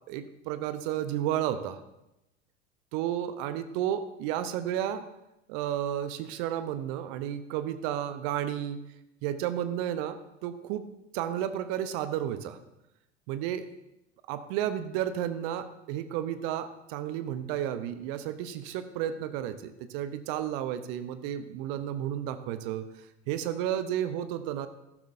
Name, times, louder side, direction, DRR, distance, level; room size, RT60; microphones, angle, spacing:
voice 1, 0.1-1.8 2.9-5.1 5.5-8.8 9.2-10.8 11.1-12.6 13.3-13.7 14.3-22.8 23.3-24.7, right 11 dB, 50° right, 11 dB, 0.8 m, -32 dB
14.0 x 12.0 x 2.6 m, 0.91 s
figure-of-eight pair, 80°, 35 cm